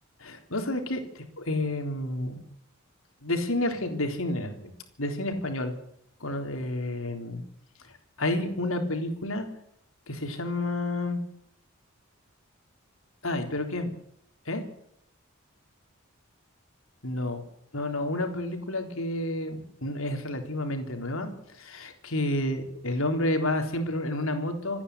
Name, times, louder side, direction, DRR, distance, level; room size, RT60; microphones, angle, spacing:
voice 1, 0.2-2.4 3.2-4.7 5.0-5.7 6.2-7.4 8.2-9.5 10.1-11.2 13.2-13.9 14.5-14.6 17.0-17.4 17.7-24.8, left 1 dB, 70° left, 5 dB, 3.8 m, -30 dB
26.5 x 10.0 x 9.8 m, 0.73 s
head